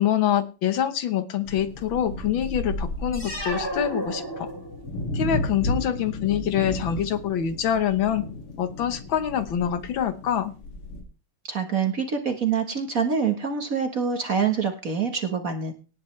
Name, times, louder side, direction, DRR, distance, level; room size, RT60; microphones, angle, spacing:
voice 1, 0.0-4.5 5.1-8.2 8.6-10.5, left 9 dB, 65° left, 11 dB, 1.8 m, -25 dB
sound 1, 1.4-11.0, left 1 dB, 90° left, 3.6 m, -34 dB
sound 2, 3.1-5.0, equal, 10° left, 4.3 m, -32 dB
voice 2, 11.5-15.7, right 6 dB, 45° right, 5 dB, 1.6 m, -25 dB
18.5 x 9.3 x 3.3 m, 0.34 s
omnidirectional pair, 2.4 m